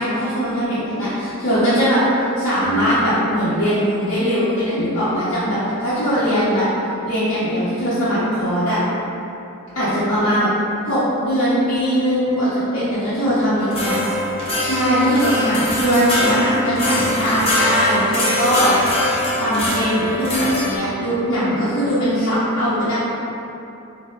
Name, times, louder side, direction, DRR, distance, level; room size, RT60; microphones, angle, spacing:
voice 1, 0.0-6.7 7.0-8.8 9.7-10.5 10.8-14.0 14.6-18.7 19.4-23.0, equal, 70° left, -13 dB, 0.7 m, -20 dB
sound 1, 13.6-20.8, left 1 dB, 30° left, 0.5 m, -22 dB
4.3 x 2.0 x 2.3 m, 2.8 s
head